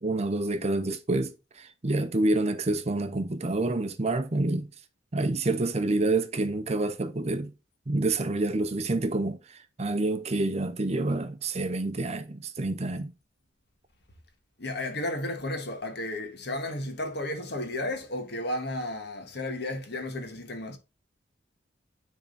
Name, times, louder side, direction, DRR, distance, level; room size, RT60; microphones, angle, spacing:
voice 1, 0.0-4.7 5.1-7.5 7.9-13.1, right 2 dB, 35° right, 0.6 m, -28 dB
voice 2, 14.6-20.8, left 1 dB, 60° left, 1.6 m, -33 dB
9.9 x 3.7 x 4.1 m
head